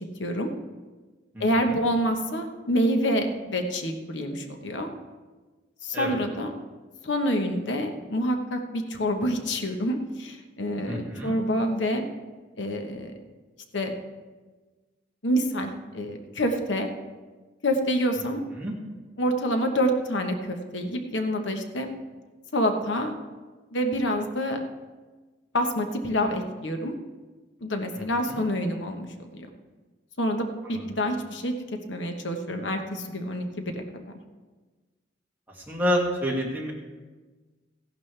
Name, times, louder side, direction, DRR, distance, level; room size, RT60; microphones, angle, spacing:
voice 1, 0.2-0.5 1.4-4.9 5.8-6.5 7.0-12.0 12.6-13.1 13.7-13.9 15.2-16.9 17.6-18.4 19.2-21.9 22.5-23.1 23.7-24.6 25.5-26.9 27.6-29.1 29.3-29.5 30.2-31.5 31.9-34.2, equal, 85° left, 4 dB, 1.1 m, -27 dB
voice 2, 1.3-1.8 5.9-6.2 10.9-11.3 18.5-18.7 28.0-28.4 30.6-30.9 35.5-36.7, equal, 10° right, -3 dB, 2.1 m, -29 dB
16.0 x 11.5 x 3.3 m, 1.3 s
head